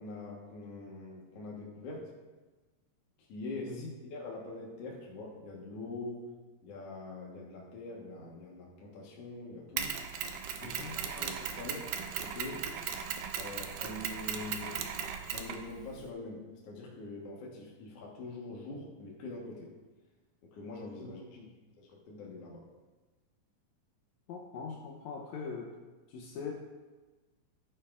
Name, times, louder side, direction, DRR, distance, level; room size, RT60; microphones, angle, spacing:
voice 1, 0.0-2.1 3.3-6.3 6.6-10.0 10.6-12.7 13.4-14.8 15.3-19.7 20.4-21.2 21.8-22.6, left 2 dB, 60° left, -3 dB, 1.8 m, -44 dB
Mechanisms, 9.8-16.1, right 7 dB, 75° right, 2.3 m, -37 dB
voice 2, 10.6-11.0 21.0-21.5 24.3-25.8 26.1-26.5, left 5 dB, 85° left, 1 dB, 1.6 m, -42 dB
12.5 x 9.7 x 2.4 m, 1.2 s
omnidirectional pair, 4.2 m